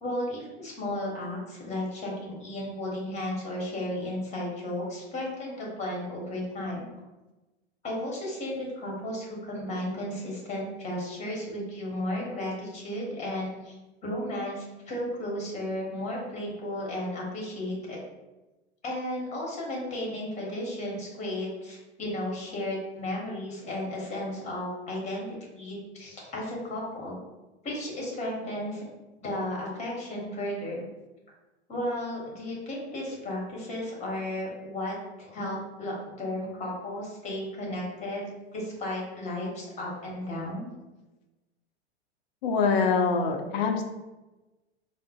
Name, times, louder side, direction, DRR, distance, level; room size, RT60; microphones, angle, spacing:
voice 1, 0.0-6.9 7.8-13.7 14.0-18.0 18.8-27.2 27.6-28.8 29.2-30.8 31.7-38.3 38.5-40.7, left 1 dB, 20° left, -3 dB, 1.0 m, -34 dB
voice 2, 42.4-43.8, left 5 dB, 40° left, 3 dB, 0.5 m, -24 dB
3.7 x 2.5 x 2.2 m, 1.1 s
figure-of-eight pair, 85°, 33 cm